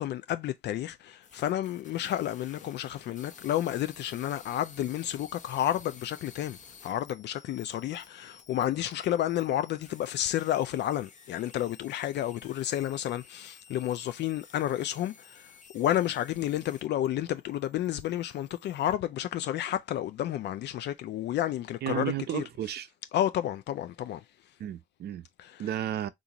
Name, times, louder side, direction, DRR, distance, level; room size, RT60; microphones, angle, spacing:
voice 1, 0.0-22.4 23.1-24.2 25.4-25.7, left 12 dB, 75° left, 0.4 m, -31 dB
sound 1, 1.2-17.1 17.4-18.9, left 5 dB, 45° left, 0.9 m, -54 dB
voice 2, 21.8-22.9 24.6-25.3 25.6-26.1, right 11 dB, 65° right, 0.5 m, -33 dB
3.8 x 2.5 x 2.8 m
cardioid pair, 90°, 18 cm